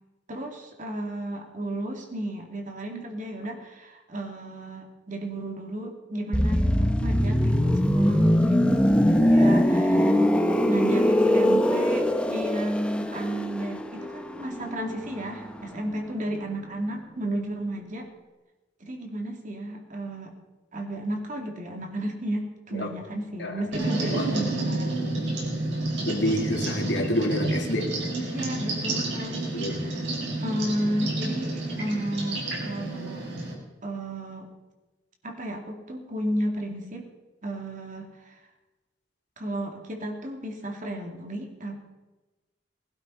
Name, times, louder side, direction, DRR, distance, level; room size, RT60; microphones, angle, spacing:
voice 1, 0.3-10.3 10.6-18.1 18.8-20.4 20.7-25.0 28.2-30.1 30.4-33.3 33.8-34.5 35.2-37.1 37.4-38.4 39.4-41.8, right 1 dB, 45° right, 2 dB, 2.5 m, -33 dB
sound 1, 6.3-16.0 16.2-16.5, equal, 5° left, 1.0 m, -22 dB
sound 2, 23.7-33.5, right 2 dB, 70° right, 5.1 m, -30 dB
voice 2, 24.1-24.4 26.0-27.9 29.5-29.8, left 1 dB, 70° left, 2 dB, 2.6 m, -28 dB
20.0 x 12.0 x 5.5 m, 1.1 s
head